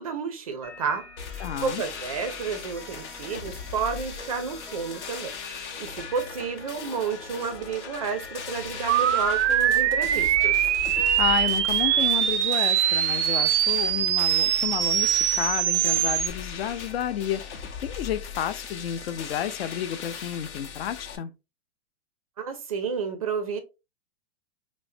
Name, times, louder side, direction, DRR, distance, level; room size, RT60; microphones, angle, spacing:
voice 1, 0.0-10.8 22.4-23.6, right 5 dB, 35° right, 0.4 m, -31 dB
sound 1, 0.6-19.6, left 3 dB, 10° left, 0.7 m, -47 dB
sound 2, 1.2-21.2, left 6 dB, 85° left, 0.9 m, -39 dB
voice 2, 1.4-1.8 11.2-21.3, left 10 dB, 60° left, 0.5 m, -31 dB
sound 3, 8.9-16.3, right 11 dB, 90° right, 0.5 m, -23 dB
4.4 x 2.0 x 2.5 m
hypercardioid pair, 170°, 34 cm